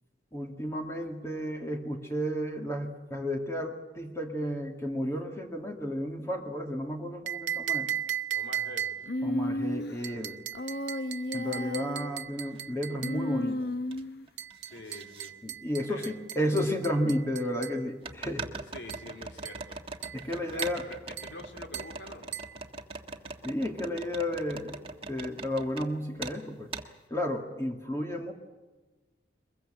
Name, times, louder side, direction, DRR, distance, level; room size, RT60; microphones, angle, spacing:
voice 1, 0.3-7.9 9.2-10.4 11.3-13.6 15.4-18.5 20.1-20.8 23.4-24.8 25.1-26.7 27.1-28.3, equal, 15° left, 2 dB, 2.3 m, -32 dB
sound 1, 7.3-9.2 10.0-13.3 14.4-17.8 18.9-19.1 19.4-19.7 20.0-20.3 20.6-20.9 21.2-21.4 21.7-22.0 22.3-22.6, right 10 dB, 80° right, 0.8 m, -37 dB
voice 2, 8.3-9.1 14.7-15.4 15.9-16.1 18.7-19.8 20.5-22.3, left 1 dB, 75° left, 4 dB, 3.4 m, -46 dB
Human voice, 9.1-10.0 10.6-12.1 13.0-14.3, left 1 dB, 60° left, 0.9 m, -33 dB
sound 2, 12.5-12.6 13.2-14.0 14.3-15.3 16.3-16.4 18.0-25.9 26.2-26.4 26.7-26.9, right 4 dB, 30° right, 1.6 m, -41 dB
22.5 x 22.0 x 7.6 m, 1.2 s
head